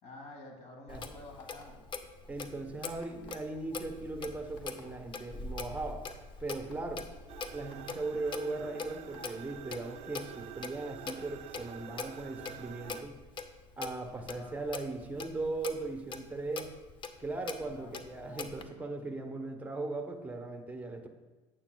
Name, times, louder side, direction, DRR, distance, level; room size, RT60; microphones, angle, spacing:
voice 1, 0.0-1.9 7.6-7.9 14.3-14.6 17.6-18.0, left 2 dB, 55° left, 2 dB, 2.1 m, -50 dB
Clock, 0.9-18.6, left 4 dB, 35° left, 0.6 m, -44 dB
sound 1, 1.4-1.9 3.0-3.5 4.6-4.8 5.6-5.7 6.1-6.2 6.6-6.8 7.7-8.0 9.1-9.4, left 4 dB, 85° left, 1.1 m, -57 dB
voice 2, 2.3-6.0 6.4-7.1 7.5-13.2 13.8-16.7 17.2-21.1, right 2 dB, 10° right, 4 dB, 1.0 m, -38 dB
sound 2, 7.3-13.0, right 12 dB, 45° right, 0.4 m, -48 dB
8.8 x 8.5 x 2.3 m, 1.2 s
supercardioid pair, 90°, 14 cm